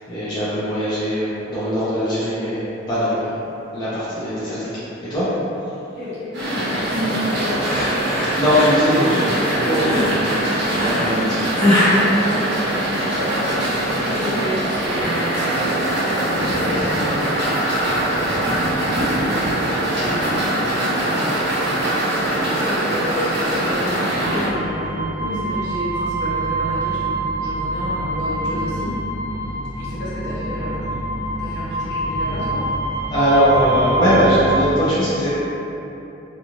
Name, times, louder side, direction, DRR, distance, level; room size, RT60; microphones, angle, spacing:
voice 1, 0.1-3.4 3.7-4.7 5.0-5.3 8.4-10.3 10.8-11.4 33.1-35.3, equal, 25° left, -12 dB, 0.5 m, -20 dB
voice 2, 5.9-7.8 11.0-11.5 12.2-17.6 17.9-18.0 18.4-29.0 29.8-31.1 31.4-32.7, equal, 55° left, -11 dB, 1.0 m, -30 dB
sound 1, 6.3-24.5, right 1 dB, 60° right, 0.7 m, -22 dB
sound 2, 7.6-13.1, left 1 dB, 5° left, 0.9 m, -22 dB
sound 3, 23.6-34.7, right 2 dB, 30° right, 0.7 m, -25 dB
2.6 x 2.5 x 2.9 m, 3.0 s
head